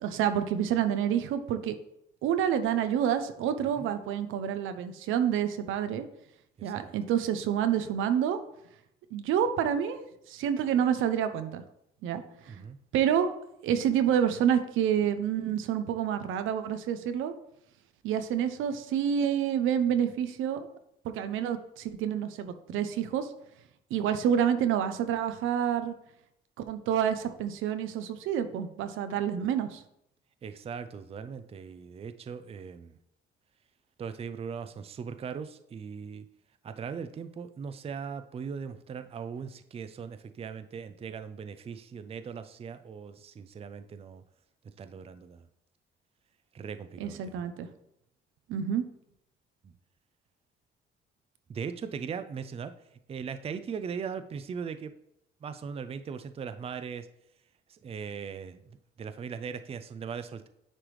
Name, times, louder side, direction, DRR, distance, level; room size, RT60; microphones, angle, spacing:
voice 1, 0.0-1.8 2.2-6.1 6.6-8.4 9.1-11.6 12.0-12.6 12.9-13.3 13.6-17.3 18.0-20.7 21.0-23.3 23.9-25.9 26.7-29.8 47.0-47.7 48.5-48.8, right 9 dB, 85° right, 10 dB, 0.5 m, -28 dB
voice 2, 6.6-6.9 12.5-12.8 30.4-33.0 34.0-36.3 36.6-44.2 44.8-45.5 46.5-47.5 49.6-49.7 51.5-52.7 53.1-54.9 55.4-57.1 57.7-58.6 59.0-60.5, right 6 dB, 30° right, 11 dB, 0.4 m, -39 dB
9.8 x 3.3 x 3.1 m, 0.78 s
cardioid pair, 90°, 20 cm